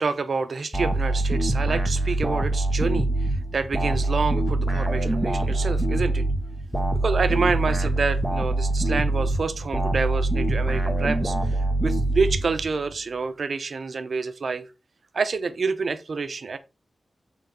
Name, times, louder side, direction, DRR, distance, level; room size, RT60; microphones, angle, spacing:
voice 1, 0.0-6.3 6.9-14.7 15.1-16.6, right 4 dB, 50° right, 0.8 m, -28 dB
sound 1, 0.7-12.9, right 2 dB, 5° right, 1.1 m, -24 dB
8.2 x 4.0 x 5.2 m
wide cardioid pair, 165°, 0 cm